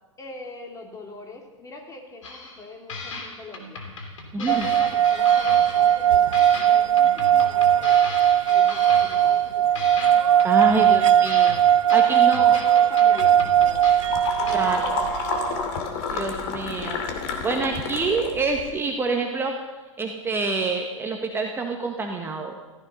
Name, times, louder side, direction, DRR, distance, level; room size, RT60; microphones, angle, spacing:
voice 1, 0.2-3.9 4.4-10.0 11.9-13.9 14.4-15.4, left 2 dB, 20° left, 2 dB, 3.0 m, -40 dB
sound 1, 2.2-2.6 2.9-6.1 6.3-9.5 9.7-14.5, left 3 dB, 70° left, 3.0 m, -37 dB
voice 2, 4.3-4.6 10.4-11.6 11.9-12.5 14.5-14.8 16.1-17.0 17.4-19.5 20.0-22.6, right 3 dB, 15° right, 2 dB, 1.4 m, -26 dB
sound 2, 4.5-15.6, right 10 dB, 65° right, 0.5 m, -19 dB
sound 3, 13.4-18.7, left 4 dB, 45° left, 2.6 m, -30 dB
15.0 x 14.5 x 5.6 m, 1.2 s
figure-of-eight pair, 100°, 17 cm